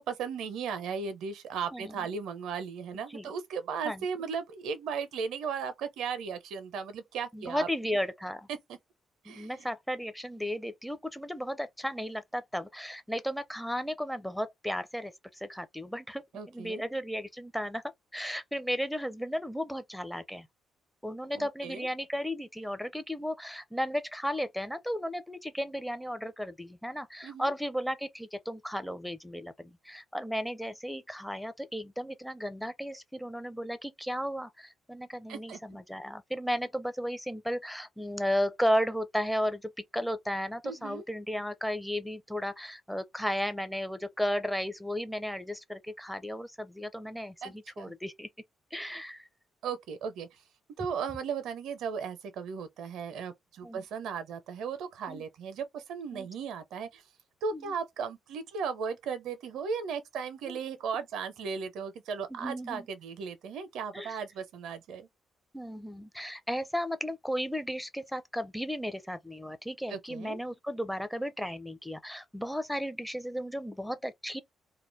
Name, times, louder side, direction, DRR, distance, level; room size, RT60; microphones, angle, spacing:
voice 1, 0.0-8.0 8.7-8.8 9.2-9.5 16.3-16.8 21.3-21.9 27.2-27.5 35.3-35.6 40.6-41.0 47.4-48.0 49.6-50.4 50.8-57.0 57.4-65.1 69.9-70.4, right 6 dB, 70° right, 0.5 m, -36 dB
voice 2, 7.3-8.5 9.3-17.8 18.1-20.5 21.0-48.3 48.7-49.3 53.6-53.8 55.1-55.2 56.1-56.3 57.5-57.7 60.5-60.6 62.3-62.9 63.9-64.2 65.5-74.4, equal, 5° left, 0.5 m, -34 dB
2.2 x 2.0 x 3.2 m
hypercardioid pair, 45°, 0 cm